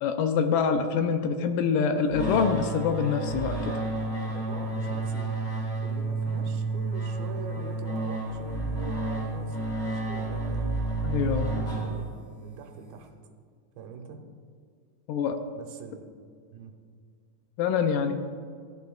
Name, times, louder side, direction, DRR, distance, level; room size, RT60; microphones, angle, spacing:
voice 1, 0.0-3.7 11.0-11.5 15.1-15.4 17.6-18.1, left 6 dB, 80° left, 6 dB, 2.1 m, -25 dB
sound 1, 2.1-12.4, right 2 dB, 20° left, 1.4 m, -31 dB
voice 2, 4.3-5.5 5.8-10.7 11.2-12.1 12.4-13.1 13.8-14.2 15.6-16.1 16.5-16.7, right 5 dB, 85° right, 4 dB, 2.7 m, -43 dB
15.5 x 10.5 x 2.3 m, 2.1 s
omnidirectional pair, 4.2 m